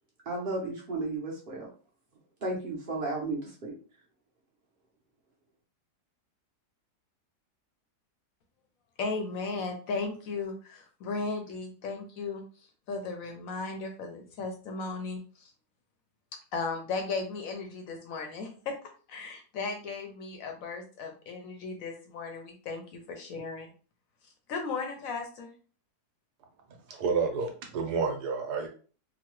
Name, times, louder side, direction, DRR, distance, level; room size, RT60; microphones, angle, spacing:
voice 1, 0.3-1.7 2.4-3.7, right 2 dB, 50° right, -3 dB, 0.7 m, -33 dB
voice 2, 9.0-15.5 16.5-18.7 19.1-23.7 24.5-25.5, left 4 dB, 70° left, 4 dB, 0.9 m, -36 dB
voice 3, 26.7-28.7, right 5 dB, 75° right, 3 dB, 1.2 m, -30 dB
3.0 x 2.2 x 3.0 m, 0.39 s
omnidirectional pair, 1.8 m